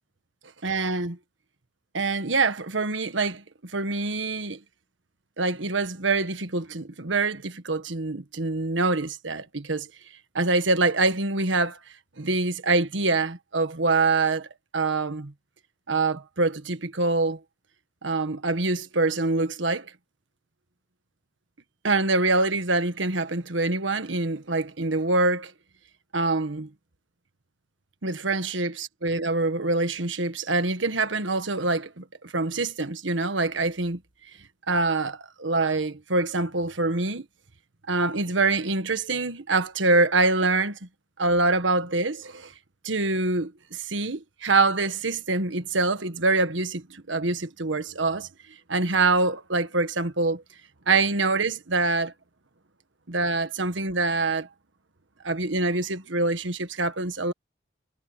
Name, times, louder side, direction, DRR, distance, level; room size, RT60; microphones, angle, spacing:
voice 1, 0.6-1.2 1.9-4.6 5.4-9.9 10.3-11.8 12.2-14.5 14.7-15.3 15.9-17.4 18.0-19.9 21.8-25.5 26.1-26.7 28.0-34.0 34.7-37.2 37.9-40.8 41.2-42.5 42.8-48.3 48.7-50.4 50.9-52.1 53.1-54.5 55.2-57.3, right 3 dB, 85° right, 1.6 m, -25 dB
head